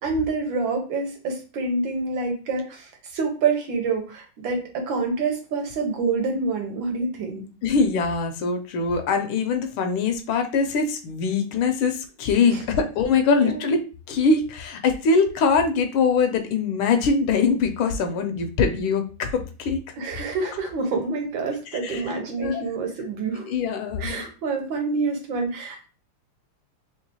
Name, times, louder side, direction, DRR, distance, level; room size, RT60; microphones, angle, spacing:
voice 1, 0.0-7.4 12.5-12.6 13.4-13.6 20.0-23.5 24.0-25.9, right 4 dB, 70° right, 3 dB, 1.4 m, -27 dB
voice 2, 7.6-13.8 14.1-19.8 21.7-22.6 23.3-24.3, left 4 dB, 75° left, 6 dB, 1.4 m, -23 dB
3.6 x 3.2 x 2.7 m, 0.34 s
omnidirectional pair, 2.4 m